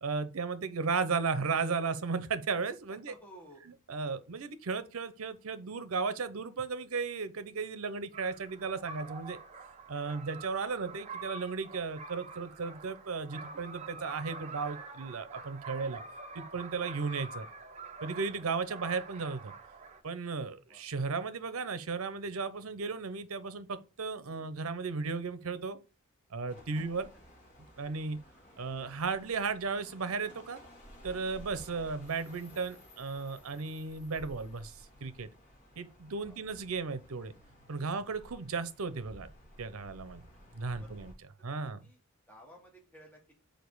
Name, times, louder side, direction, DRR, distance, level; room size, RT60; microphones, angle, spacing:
voice 1, 0.0-3.1 3.9-9.4 9.9-16.0 16.3-17.5 18.0-19.5 20.0-25.8 26.3-27.1 27.8-28.2 28.6-30.6 31.0-34.7 35.0-35.3 35.8-37.3 37.7-39.3 39.6-40.2 40.5-41.1 41.4-41.8, right 4 dB, 75° right, 0.7 m, -35 dB
voice 2, 2.9-3.6 20.7-20.8 24.3-24.5 26.7-27.0 28.6-28.9 36.2-36.4 40.8-41.0 41.6-42.0 42.3-43.3, equal, 10° left, 1.7 m, -56 dB
sound 1, 8.1-20.0, right 3 dB, 30° right, 0.7 m, -46 dB
sound 2, 26.5-41.1, equal, 40° left, 2.4 m, -55 dB
5.2 x 4.5 x 4.7 m
head